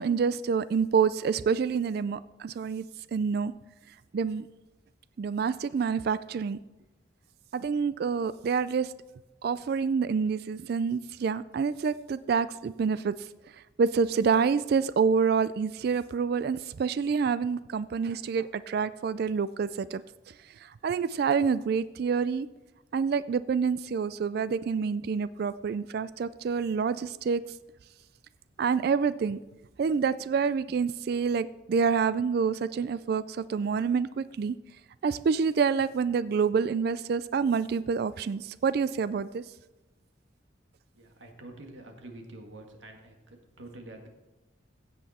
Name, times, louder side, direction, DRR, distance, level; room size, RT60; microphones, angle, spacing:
voice 1, 0.0-2.8 3.1-3.5 4.1-4.5 5.2-6.6 7.5-8.9 9.4-13.3 13.8-20.0 20.6-22.5 22.9-27.4 28.6-29.4 29.8-34.5 35.0-39.4, right 5 dB, 55° right, 16 dB, 0.3 m, -27 dB
voice 2, 41.0-44.1, right 2 dB, 75° right, 3 dB, 1.8 m, -47 dB
15.5 x 7.8 x 4.2 m, 1.1 s
head